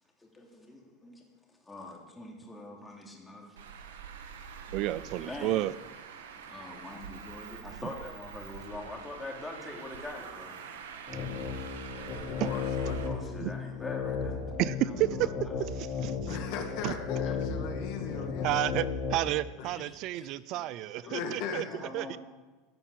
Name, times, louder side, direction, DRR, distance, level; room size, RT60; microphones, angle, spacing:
voice 1, 0.2-1.2 1.5-3.6 4.7-5.6 6.5-10.6 11.9-12.5 13.0-15.5 17.2-17.4 18.5-18.6 19.7-20.6 21.0-21.4 21.7-22.2, left 2 dB, 10° left, 3.0 m, -45 dB
Traffic noise roadway noise, 3.6-13.1, right 7 dB, 85° right, 1.3 m, -45 dB
voice 2, 4.7-5.7 12.4-12.5 13.4-13.5 14.6-15.3 15.6-16.4 16.8-17.0 18.4-21.6 21.9-22.2, right 16 dB, 55° right, 0.4 m, -31 dB
sound 1, 11.1-19.2, left 5 dB, 40° left, 3.6 m, -34 dB
voice 3, 12.1-13.5 16.3-18.8 19.6-19.7 21.0-21.6, left 6 dB, 60° left, 1.9 m, -39 dB
14.0 x 5.5 x 8.6 m
hypercardioid pair, 100°, 0 cm